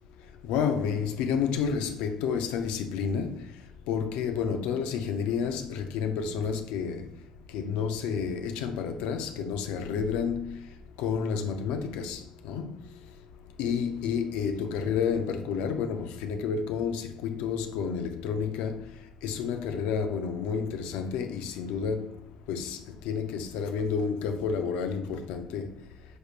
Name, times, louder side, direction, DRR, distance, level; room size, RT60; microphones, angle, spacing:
voice 1, 0.4-3.4 3.9-7.1 7.5-10.7 11.0-12.7 13.6-18.8 19.2-22.1 22.5-22.8 23.0-25.7, left 6 dB, 90° left, 0.4 m, -30 dB
6.2 x 3.2 x 2.4 m
supercardioid pair, 65°, 2 cm